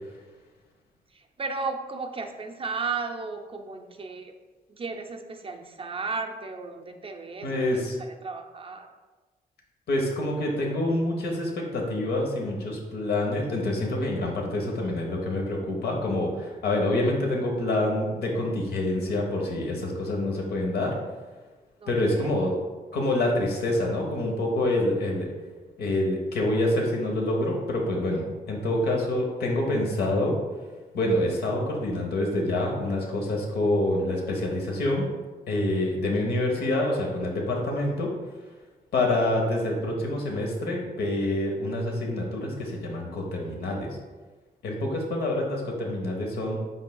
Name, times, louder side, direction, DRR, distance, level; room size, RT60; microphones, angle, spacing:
voice 1, 1.1-4.3 4.7-8.9 21.8-22.3, right 4 dB, 35° right, 5 dB, 0.5 m, -35 dB
voice 2, 7.4-8.0 9.9-20.9 21.9-22.5 22.9-25.3 25.8-30.4 30.9-35.1 35.5-38.1 38.9-43.9 44.6-46.6, left 1 dB, 85° left, 0 dB, 0.9 m, -26 dB
5.3 x 3.8 x 2.3 m, 1.3 s
cardioid pair, 70°, 16 cm